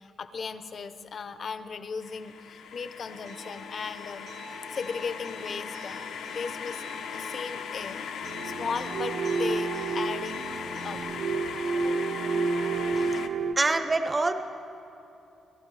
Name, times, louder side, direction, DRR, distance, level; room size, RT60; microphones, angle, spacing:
voice 1, 0.0-4.3 4.7-6.0 6.3-6.8 7.1-10.5 10.8-11.0 11.7-11.9, left 5 dB, 40° left, 11 dB, 0.6 m, -36 dB
sound 1, 2.0-13.3, left 7 dB, 80° left, 0.7 m, -39 dB
Acoustic guitar, 3.0-11.0, left 1 dB, 80° right, 3.2 m, -45 dB
sound 2, 8.2-13.5, right 4 dB, 60° right, 0.7 m, -30 dB
voice 2, 13.6-14.3, right 3 dB, 20° right, 8 dB, 0.5 m, -25 dB
26.0 x 12.5 x 3.2 m, 2.8 s
cardioid pair, 165°, 0 cm